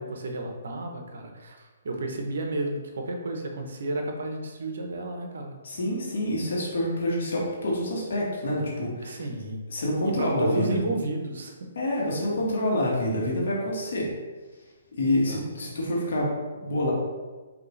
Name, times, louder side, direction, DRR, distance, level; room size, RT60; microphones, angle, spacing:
voice 1, 0.0-5.6 9.0-9.6 10.2-11.7 15.0-15.7, right 2 dB, 70° right, 4 dB, 0.7 m, -32 dB
voice 2, 5.6-9.2 9.7-10.8 11.7-14.1 14.9-16.9, left 1 dB, 70° left, -3 dB, 1.5 m, -27 dB
5.2 x 2.8 x 3.1 m, 1.3 s
hypercardioid pair, 155°, 0 cm